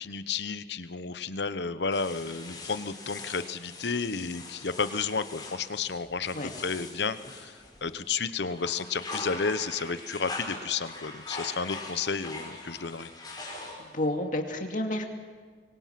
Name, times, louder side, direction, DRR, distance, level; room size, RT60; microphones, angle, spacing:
voice 1, 0.0-7.6 7.8-13.1, left 5 dB, 70° left, 13 dB, 0.9 m, -32 dB
sound 1, 1.9-8.1 8.5-14.1, left 2 dB, 25° left, 5.2 m, -42 dB
voice 2, 13.8-15.0, left 1 dB, 45° left, 3 dB, 2.4 m, -30 dB
25.5 x 23.5 x 6.0 m, 1.5 s
head